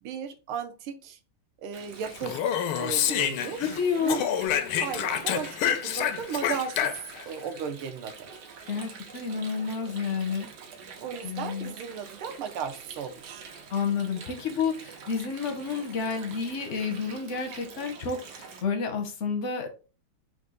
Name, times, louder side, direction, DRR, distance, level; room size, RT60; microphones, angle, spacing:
voice 1, 0.0-1.2 1.6-2.4 2.8-3.6 4.0-4.2 4.8-7.0 7.3-8.3 11.0-13.4, right 7 dB, 90° right, 1.6 m, -35 dB
Water, 1.7-18.6, right 5 dB, 65° right, 1.3 m, -46 dB
Speech, 2.1-3.8 4.1-7.2, left 10 dB, 90° left, 1.5 m, -28 dB
voice 2, 3.6-4.2 8.7-10.5 11.2-11.7 13.7-18.2 18.6-19.7, left 6 dB, 60° left, 0.7 m, -30 dB
4.4 x 2.5 x 4.8 m
omnidirectional pair, 2.3 m